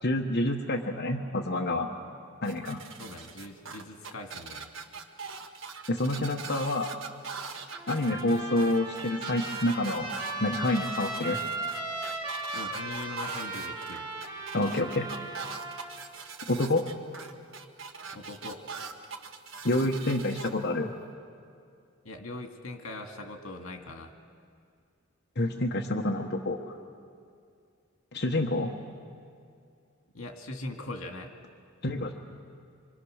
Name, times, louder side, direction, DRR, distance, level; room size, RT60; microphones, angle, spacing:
voice 1, 0.0-1.9 2.4-2.8 5.9-6.9 7.9-10.1 10.4-11.4 14.5-15.3 16.5-16.9 19.6-20.9 25.4-26.6 28.1-28.7 31.8-32.1, left 1 dB, 50° left, 0 dB, 1.2 m, -28 dB
sound 1, 2.4-20.5, right 5 dB, 65° right, 1.6 m, -42 dB
voice 2, 3.0-4.7 5.1-5.2 12.5-14.1 18.1-18.7 22.0-24.1 30.1-31.3, left 2 dB, 80° left, 4 dB, 2.2 m, -41 dB
Trumpet, 7.7-15.9, right 2 dB, 20° right, 3.4 m, -37 dB
26.0 x 25.0 x 6.5 m, 2.3 s
head